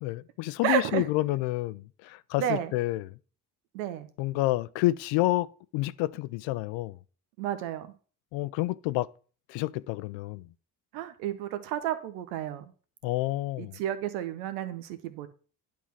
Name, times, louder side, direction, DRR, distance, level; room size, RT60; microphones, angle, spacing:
voice 1, 0.0-3.1 4.2-5.5 5.7-6.9 8.3-9.1 9.5-10.4 13.0-13.7, left 18 dB, 60° left, 0.6 m, -29 dB
voice 2, 0.6-1.1 2.4-2.7 3.7-4.1 7.4-7.9 10.9-12.7 13.6-15.3, right 11 dB, 75° right, 1.1 m, -31 dB
10.0 x 3.7 x 5.9 m
hypercardioid pair, 50°, 49 cm